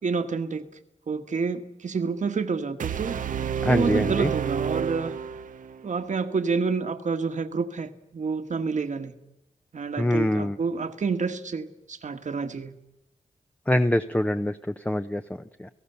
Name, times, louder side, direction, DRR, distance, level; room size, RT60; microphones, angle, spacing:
voice 1, 0.0-0.7 1.1-3.2 3.7-5.1 5.8-9.1 9.7-12.7, right 5 dB, 65° right, 8 dB, 1.6 m, -28 dB
sound 1, 2.8-5.9, right 7 dB, 85° right, 0.7 m, -29 dB
voice 2, 3.6-4.3 10.0-10.6 13.7-15.7, left 1 dB, 10° left, 9 dB, 0.7 m, -25 dB
29.5 x 17.0 x 6.9 m, 0.90 s
cardioid pair, 70°, 13 cm